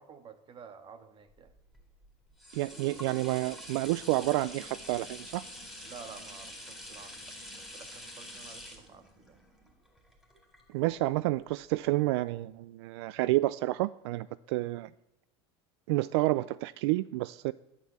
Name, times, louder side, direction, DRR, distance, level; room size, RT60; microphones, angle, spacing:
voice 1, 0.0-1.5 5.8-7.3 7.7-9.4, right 6 dB, 35° right, 9 dB, 1.7 m, -51 dB
sound 1, 1.4-11.1 11.6-11.7, equal, 5° right, 4.1 m, -46 dB
voice 2, 2.5-5.4 10.7-14.9 15.9-17.5, right 18 dB, 75° right, 18 dB, 0.4 m, -29 dB
11.0 x 9.3 x 8.6 m, 0.90 s
supercardioid pair, 110°, 14 cm